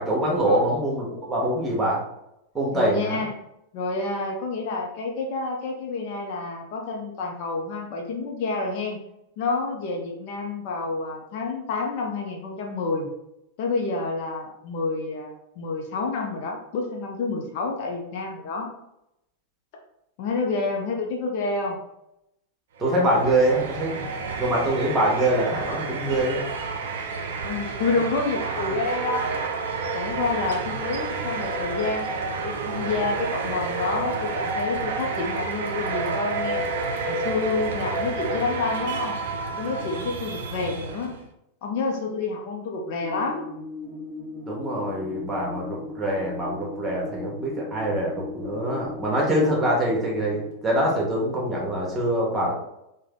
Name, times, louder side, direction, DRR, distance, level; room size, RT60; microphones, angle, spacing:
voice 1, 0.0-2.0 2.5-3.2 22.8-24.0 24.4-26.5 44.5-52.5, right 1 dB, 15° right, -3 dB, 1.2 m, -24 dB
voice 2, 2.7-3.3 3.7-9.0 9.4-13.1 13.6-18.7 20.2-21.8 27.4-29.4 29.9-32.1 32.4-36.6 37.1-39.2 39.6-41.2 41.6-43.5, left 3 dB, 45° left, 1 dB, 0.6 m, -28 dB
sound 1, 22.8-41.2, right 4 dB, 60° right, 0.4 m, -30 dB
sound 2, 43.0-50.5, left 3 dB, 40° right, 0.9 m, -37 dB
3.3 x 2.2 x 3.6 m, 0.83 s
figure-of-eight pair, 90°, 0 cm